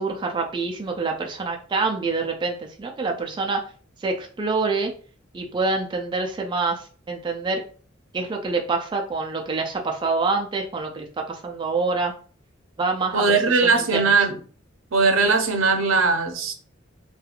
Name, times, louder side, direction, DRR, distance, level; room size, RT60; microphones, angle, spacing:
voice 1, 0.0-3.6 4.0-4.9 5.3-7.6 8.1-12.1 12.8-13.4 13.6-14.2, right 3 dB, 25° right, 2 dB, 0.3 m, -26 dB
voice 2, 13.1-14.4 14.9-16.5, right 4 dB, 85° right, 5 dB, 0.6 m, -19 dB
2.9 x 2.3 x 2.4 m, 0.41 s
head